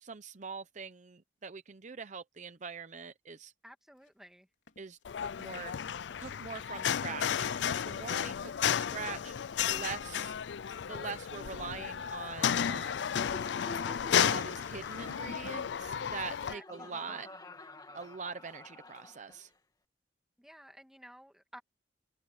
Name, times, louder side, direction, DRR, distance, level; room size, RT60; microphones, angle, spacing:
voice 1, 0.0-3.5 4.8-5.7 6.2-9.3 9.7-10.3 10.9-13.1 14.1-17.3 17.9-19.5, right 5 dB, 40° right, 0.7 m, -43 dB
voice 2, 3.6-4.5 16.0-17.0 20.4-21.6, equal, ahead, 2.1 m, -54 dB
sound 1, 3.9-5.1 5.4-6.0 6.2-6.7 7.2-10.6 11.0-12.0, left 2 dB, 85° left, 3.4 m, -62 dB
sound 2, 5.0-16.5, left 8 dB, 70° left, 0.4 m, -33 dB
Laughter, 13.1-19.5, left 2 dB, 20° left, 2.3 m, -49 dB
head